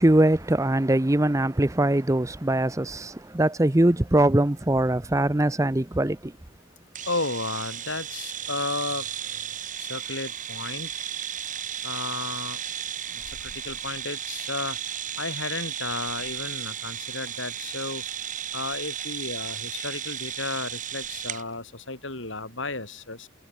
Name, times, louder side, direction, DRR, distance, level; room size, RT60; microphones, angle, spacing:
voice 1, 0.0-6.3, right 1 dB, 15° right, 0.6 m, -22 dB
sound 1, 6.9-21.4, right 9 dB, 40° right, 4.7 m, -34 dB
voice 2, 7.1-9.1 9.8-10.9 11.8-12.6 13.1-14.8 15.2-18.0 18.5-23.3, left 3 dB, 65° left, 4.7 m, -33 dB
head